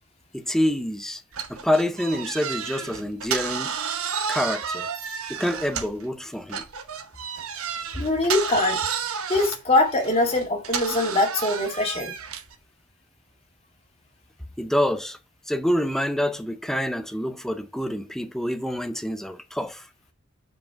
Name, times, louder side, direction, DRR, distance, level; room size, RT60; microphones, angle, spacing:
voice 1, 0.3-1.2 1.5-3.7 4.3-4.9 5.3-6.7 14.6-15.2 15.5-19.9, left 1 dB, ahead, 0.6 m, -26 dB
sound 1, 1.3-6.1 6.5-12.6, right 7 dB, 80° right, 1.0 m, -31 dB
voice 2, 8.0-8.8 9.3-12.1, left 2 dB, 30° left, 2.0 m, -22 dB
6.1 x 4.6 x 5.7 m
head